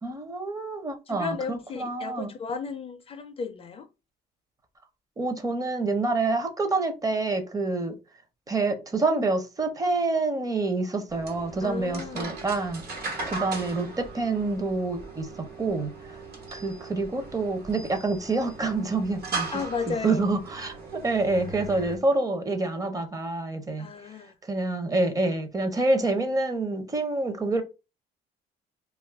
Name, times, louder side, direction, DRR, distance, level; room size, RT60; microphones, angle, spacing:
voice 1, 0.0-2.3 5.2-8.0 8.5-12.8 13.3-16.1 16.5-19.5 19.9-23.9 24.4-27.6, right 3 dB, 20° right, 0.6 m, -27 dB
voice 2, 1.1-3.9 11.6-12.5 19.5-20.3 23.8-24.3, left 5 dB, 35° left, 0.4 m, -34 dB
sound 1, 11.1-22.0, right 3 dB, 70° right, 1.2 m, -38 dB
2.5 x 2.3 x 3.4 m
cardioid pair, 110°, 17 cm